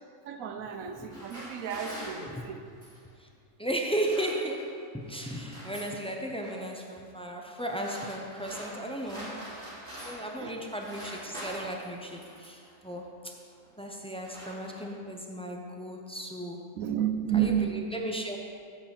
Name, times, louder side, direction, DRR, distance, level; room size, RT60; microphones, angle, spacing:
voice 1, 0.2-2.6 10.4-10.6 16.8-17.8, right 10 dB, 80° right, 7 dB, 1.1 m, -31 dB
sound 1, 0.9-3.1 3.8-4.8 5.1-6.0 6.4-6.8 7.5-10.4 10.6-12.7 13.5-13.7 14.0-15.1, equal, 40° right, 2.3 m, -45 dB
voice 2, 3.6-9.5 10.0-13.3 13.8-16.7 17.3-18.4, right 1 dB, 5° left, 0 dB, 0.4 m, -35 dB
8.8 x 4.7 x 7.3 m, 2.2 s
omnidirectional pair, 1.4 m